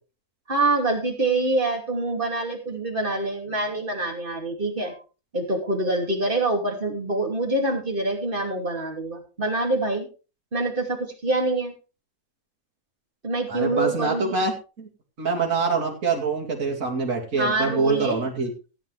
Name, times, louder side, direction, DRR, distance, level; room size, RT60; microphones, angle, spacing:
voice 1, 0.5-5.0 5.3-10.1 10.5-11.7 13.2-14.4 17.4-18.3, right 2 dB, 35° right, 2 dB, 2.9 m, -25 dB
voice 2, 13.5-14.9 15.2-18.5, right 4 dB, 70° right, -1 dB, 2.7 m, -25 dB
16.0 x 9.2 x 3.4 m, 0.33 s
omnidirectional pair, 1.5 m